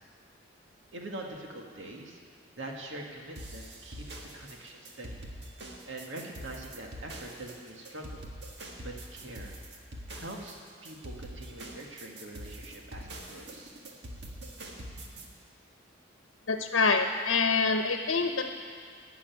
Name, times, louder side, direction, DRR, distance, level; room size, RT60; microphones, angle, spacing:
voice 1, 0.9-2.2 2.6-5.2 5.8-8.3 8.8-9.5 10.2-13.7, right 1 dB, 75° right, 0 dB, 1.9 m, -44 dB
sound 1, 3.4-15.3, right 1 dB, 55° right, 1.8 m, -44 dB
voice 2, 16.5-18.5, left 4 dB, 85° left, 5 dB, 1.0 m, -26 dB
17.5 x 7.0 x 9.5 m, 2.1 s
head